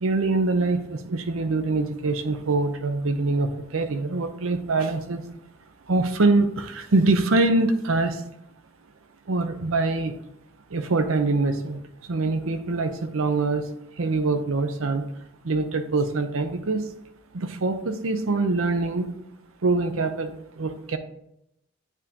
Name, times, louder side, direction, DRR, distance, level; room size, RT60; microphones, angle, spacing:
voice 1, 0.0-5.2 5.9-8.2 9.3-10.1 10.7-13.7 14.0-15.1 15.4-16.9 17.3-19.1 19.6-21.0, right 3 dB, 80° right, 8 dB, 0.7 m, -24 dB
9.0 x 3.7 x 2.8 m, 0.78 s
head